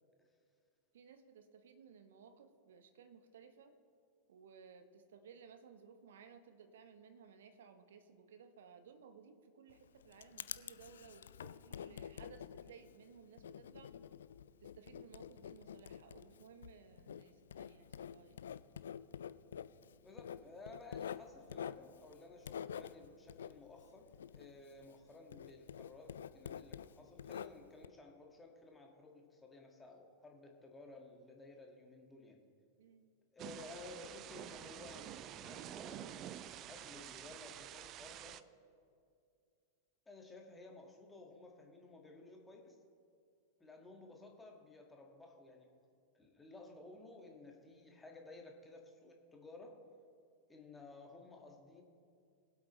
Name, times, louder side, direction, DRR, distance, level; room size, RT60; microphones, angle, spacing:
voice 1, 0.9-3.7 4.3-13.9 14.6-18.4 32.8-33.1, right 6 dB, 60° right, 9 dB, 1.0 m, -59 dB
Writing, 9.7-25.0 25.3-27.9, left 8 dB, 65° left, 0.3 m, -48 dB
voice 2, 20.0-32.4 33.3-38.4 40.0-42.8 43.6-45.7 46.1-49.8 50.5-51.8, left 2 dB, 10° left, 1 dB, 1.8 m, -55 dB
Thunder / Rain, 33.4-38.4, right 11 dB, 35° right, 0.4 m, -49 dB
22.0 x 8.1 x 3.1 m, 2.3 s
figure-of-eight pair, 90°, 0 cm